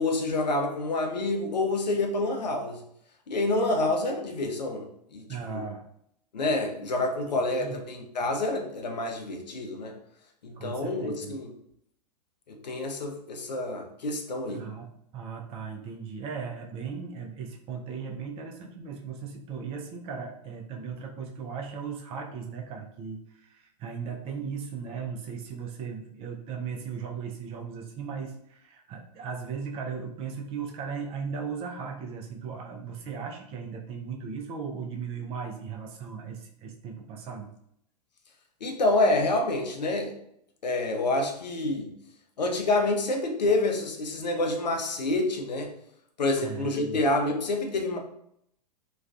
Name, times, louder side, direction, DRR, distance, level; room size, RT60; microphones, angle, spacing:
voice 1, 0.0-2.8 3.3-5.6 6.3-9.9 10.4-11.5 12.5-14.6 38.6-40.1 40.6-41.9 42.4-45.7 46.2-48.0, left 2 dB, 85° left, 2 dB, 0.5 m, -28 dB
voice 2, 5.3-5.9 7.3-7.8 10.5-11.4 14.5-14.9 15.1-37.5 46.4-47.0, right 6 dB, 30° right, 2 dB, 0.4 m, -37 dB
2.4 x 2.2 x 2.4 m, 0.73 s
figure-of-eight pair, 105°, 21 cm